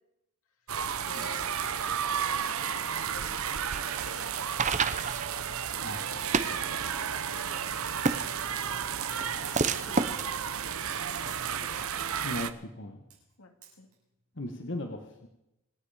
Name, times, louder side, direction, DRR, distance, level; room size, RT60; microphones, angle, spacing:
sound 1, 0.7-12.5, right 8 dB, 75° right, 0.9 m, -33 dB
voice 1, 1.0-4.7 5.7-8.4 8.7-10.3 11.3-11.8 13.4-13.9, left 3 dB, 75° left, 4 dB, 2.4 m, -52 dB
sound 2, 1.1-1.5 3.5-3.8 4.0-4.4 5.1-5.2 6.2-6.6 8.6-8.8 9.1-9.4 10.8-11.3 13.1-13.3 13.6-13.9, right 7 dB, 90° right, 7.5 m, -48 dB
sound 3, 3.5-11.8, right 4 dB, 35° right, 0.7 m, -33 dB
voice 2, 12.2-13.0 14.3-15.3, left 1 dB, 55° left, 3 dB, 1.5 m, -37 dB
27.0 x 9.9 x 5.1 m, 0.86 s
head